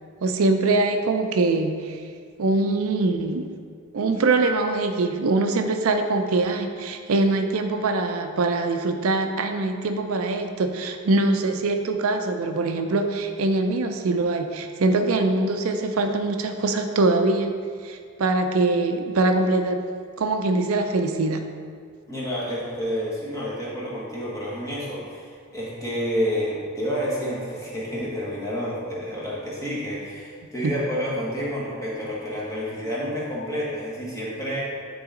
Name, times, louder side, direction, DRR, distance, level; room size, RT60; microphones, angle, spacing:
voice 1, 0.2-2.0 2.4-3.5 3.9-17.5 17.8-19.8 20.2-21.4 30.6-30.7, right 2 dB, 70° right, 6 dB, 0.5 m, -23 dB
voice 2, 22.1-34.7, equal, 15° left, -6 dB, 1.4 m, -29 dB
9.7 x 3.9 x 3.7 m, 2.1 s
head